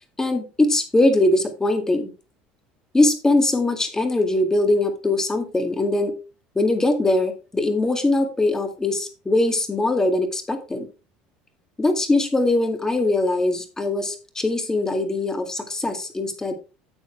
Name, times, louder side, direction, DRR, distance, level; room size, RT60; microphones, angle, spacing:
voice 1, 0.2-2.1 2.9-6.1 6.6-10.9 11.8-16.5, left 2 dB, 15° left, 6 dB, 2.0 m, -21 dB
9.6 x 7.2 x 3.3 m, 0.31 s
supercardioid pair, 100°, 4 cm